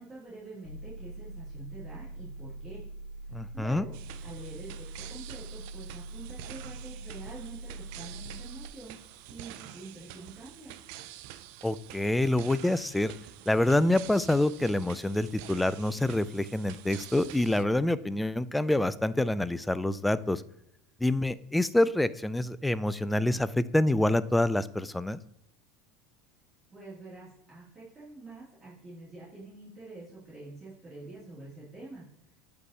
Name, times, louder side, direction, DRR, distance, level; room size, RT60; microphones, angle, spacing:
voice 1, 0.0-2.8 3.3-3.9 4.2-10.7 26.7-32.1, right 2 dB, 30° right, -8 dB, 2.7 m, -46 dB
sound 1, 0.6-8.7, right 2 dB, 65° left, 1.0 m, -43 dB
voice 2, 3.3-3.8 11.6-13.1 13.5-20.4 21.0-25.2, left 1 dB, 5° left, 16 dB, 0.3 m, -26 dB
sound 2, 3.9-17.6, right 12 dB, 70° right, 0.4 m, -47 dB
7.8 x 5.3 x 2.8 m, 0.78 s
supercardioid pair, 110°, 0 cm